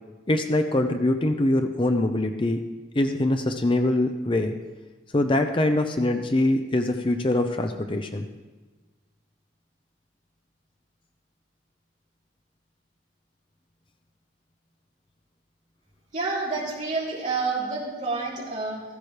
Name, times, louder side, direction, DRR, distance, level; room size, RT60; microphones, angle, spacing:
voice 1, 0.3-2.6 2.9-4.5 5.1-8.2, left 1 dB, 25° left, 6 dB, 0.6 m, -23 dB
voice 2, 16.1-18.8, right 3 dB, 40° right, -5 dB, 3.3 m, -28 dB
15.0 x 14.5 x 3.3 m, 1.3 s
head